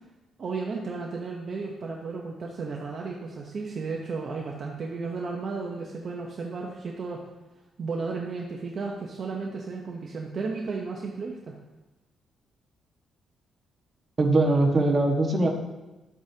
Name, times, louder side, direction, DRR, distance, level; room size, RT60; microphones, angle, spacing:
voice 1, 0.4-7.2 7.8-11.6, right 4 dB, 40° right, -1 dB, 0.9 m, -34 dB
voice 2, 14.2-15.5, right 2 dB, 25° right, -1 dB, 1.5 m, -21 dB
12.0 x 8.4 x 2.8 m, 1.1 s
cardioid pair, 160°, 0 cm